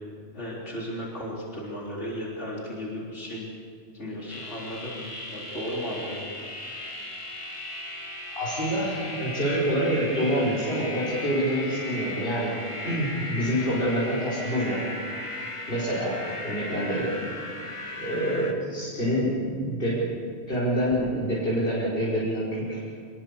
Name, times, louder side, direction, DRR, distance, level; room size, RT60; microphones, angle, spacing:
voice 1, 0.3-3.5 3.9-6.3, equal, 75° left, -4 dB, 4.2 m, -35 dB
sound 1, 4.3-18.5, left 1 dB, 25° left, 1.9 m, -37 dB
voice 2, 8.4-12.6 12.8-14.9 15.7-17.2 18.0-20.0 20.5-22.8, equal, 50° left, -8 dB, 5.5 m, -26 dB
25.5 x 22.0 x 6.9 m, 2.2 s
omnidirectional pair, 1.2 m